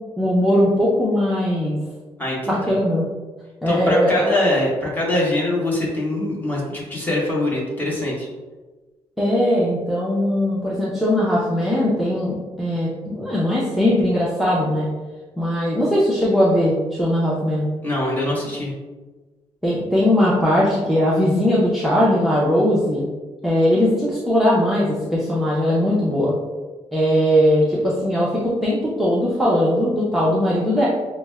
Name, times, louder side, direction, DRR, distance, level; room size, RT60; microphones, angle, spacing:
voice 1, 0.2-1.8 2.5-3.0 3.6-4.4 9.2-14.9 15.4-17.7 19.6-23.0 23.4-26.3 26.9-30.9, equal, ahead, -7 dB, 0.6 m, -19 dB
voice 2, 2.2-2.7 3.7-8.3 17.8-18.7, left 1 dB, 15° left, -5 dB, 1.1 m, -23 dB
5.8 x 2.1 x 2.2 m, 1.3 s
cardioid pair, 115°, 11 cm